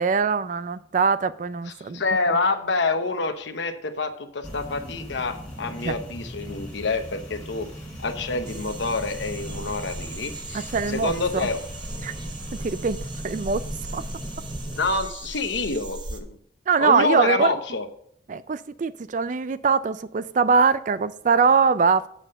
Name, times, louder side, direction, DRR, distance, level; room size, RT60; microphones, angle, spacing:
voice 1, 0.0-2.0 5.9-6.0 10.5-11.5 12.0-12.1 12.6-13.0 13.2-13.6 13.9-14.0 16.7-17.5 18.3-22.1, right 5 dB, 40° right, 0.3 m, -22 dB
voice 2, 1.6-7.7 8.0-11.7 14.7-16.4 16.8-17.9, left 3 dB, 70° left, 0.9 m, -27 dB
sound 1, 4.4-14.9, equal, 5° left, 2.8 m, -38 dB
sound 2, 8.5-16.2, right 2 dB, 25° right, 0.7 m, -38 dB
8.4 x 5.5 x 5.4 m
head